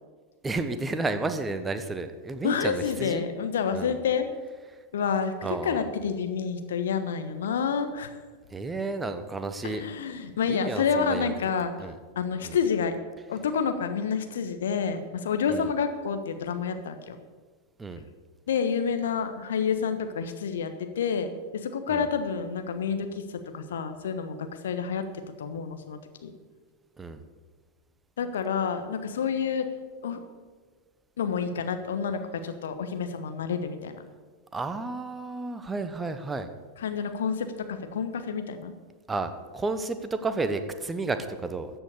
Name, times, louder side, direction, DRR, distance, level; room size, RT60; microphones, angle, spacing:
voice 1, 0.4-3.2 3.7-4.0 5.4-5.8 8.5-9.9 10.5-11.3 11.8-12.0 12.4-12.6 15.5-15.7 17.8-18.0 21.9-22.0 27.0-27.2 34.5-36.5 39.1-41.7, right 3 dB, 15° right, 9 dB, 1.0 m, -32 dB
voice 2, 2.4-4.3 4.9-8.2 9.6-11.7 12.1-13.0 13.3-17.2 18.5-23.2 23.5-25.0 25.4-26.3 28.2-29.7 30.0-30.2 31.2-34.0 36.8-38.7, left 6 dB, 60° left, 8 dB, 1.3 m, -29 dB
14.0 x 7.9 x 6.7 m, 1.4 s
figure-of-eight pair, 90°, 0 cm